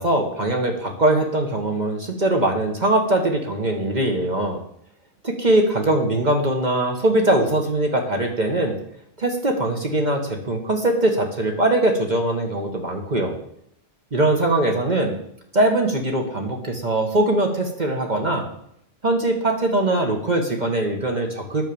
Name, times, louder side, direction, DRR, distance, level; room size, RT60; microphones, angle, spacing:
voice 1, 0.0-4.6 5.2-8.8 9.2-13.4 14.1-15.1 15.5-18.5 19.0-21.7, right 1 dB, 45° right, 2 dB, 1.5 m, -21 dB
9.6 x 6.5 x 6.9 m, 0.71 s
omnidirectional pair, 1.1 m